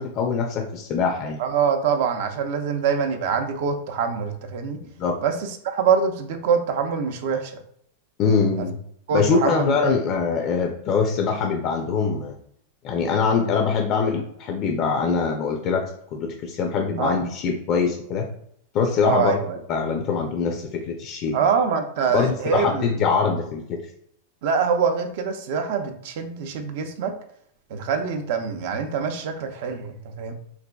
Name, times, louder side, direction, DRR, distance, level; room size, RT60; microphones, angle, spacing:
voice 1, 0.0-1.4 5.0-5.2 8.2-8.8 9.1-12.4 12.8-18.3 18.7-19.4 19.7-21.4 22.1-23.8, left 5 dB, 35° left, 3 dB, 0.4 m, -23 dB
voice 2, 1.4-4.8 5.2-7.6 8.6-8.7 9.1-9.9 17.0-17.2 19.0-19.6 21.3-22.9 24.4-27.1 27.7-30.3, right 6 dB, 60° right, 6 dB, 0.5 m, -24 dB
3.9 x 2.5 x 2.3 m, 0.68 s
supercardioid pair, 145°, 0 cm